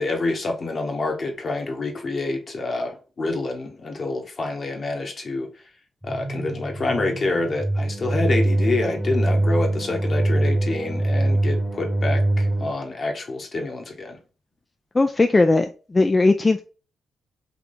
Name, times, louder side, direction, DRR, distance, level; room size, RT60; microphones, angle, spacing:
voice 1, 0.0-5.5 6.0-14.2, left 2 dB, 50° left, 1.2 m, -27 dB
sound 1, 6.0-12.7, right 1 dB, 10° right, 1.0 m, -23 dB
voice 2, 14.9-16.7, left 3 dB, 30° left, 0.4 m, -18 dB
3.7 x 2.8 x 3.8 m
supercardioid pair, 50°, 0 cm